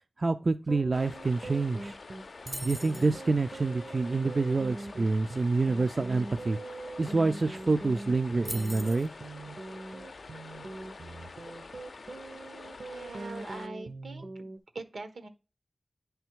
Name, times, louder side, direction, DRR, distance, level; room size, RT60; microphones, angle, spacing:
voice 1, 0.2-2.0 2.6-6.6 7.0-9.1, right 3 dB, 50° right, 0.4 m, -27 dB
sound 1, 0.6-14.6, right 2 dB, 70° right, 0.9 m, -43 dB
sound 2, 0.9-13.7, left 3 dB, 75° left, 0.5 m, -47 dB
sound 3, 2.5-3.1 7.1-7.2 7.4-7.7 8.4-9.1, equal, 5° left, 0.5 m, -40 dB
voice 2, 12.8-14.5 14.7-15.3, right 3 dB, 90° right, 1.2 m, -42 dB
10.0 x 3.4 x 4.6 m
wide cardioid pair, 65°, 0 cm